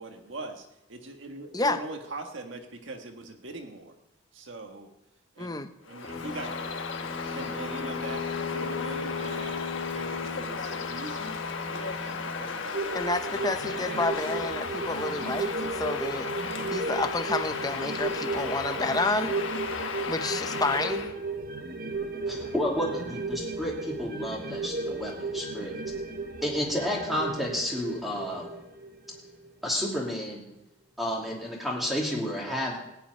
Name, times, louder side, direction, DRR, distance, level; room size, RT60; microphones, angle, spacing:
voice 1, 0.0-3.9 4.3-4.9 5.3-5.6 5.9-6.5 6.9-8.2 8.5-13.8, right 2 dB, 75° right, 4 dB, 1.6 m, -42 dB
voice 2, 5.4-5.7 12.9-16.3 16.7-19.4 20.1-21.1, left 3 dB, 20° left, 9 dB, 0.7 m, -30 dB
Bird vocalization bird call bird song, 5.9-21.1, left 5 dB, 80° left, 1.2 m, -35 dB
sound 1, 6.1-12.6, left 5 dB, 35° left, 2.5 m, -37 dB
sound 2, 12.7-29.5 29.9-30.0, right 3 dB, 50° right, 1.0 m, -34 dB
voice 3, 22.3-25.8 26.4-28.5 29.6-30.5 31.0-32.8, equal, ahead, -3 dB, 2.7 m, -31 dB
15.0 x 5.9 x 9.3 m, 0.88 s
head